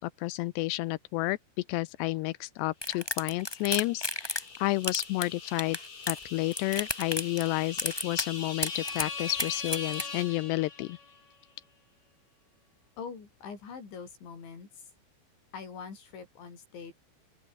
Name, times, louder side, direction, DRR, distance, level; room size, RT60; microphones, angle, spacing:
voice 1, 0.0-1.4 1.7-5.8 6.1-11.0, left 19 dB, 90° left, 2.4 m, -31 dB
sound 1, 2.8-4.6 4.8-6.2 6.5-7.5 7.8-8.3 8.6-10.0, left 1 dB, 10° left, 1.4 m, -32 dB
sound 2, 3.2-11.2, left 4 dB, 50° left, 8.7 m, -41 dB
voice 2, 13.0-14.9 15.5-16.9, left 6 dB, 65° left, 8.6 m, -43 dB
open air
omnidirectional pair, 5.8 m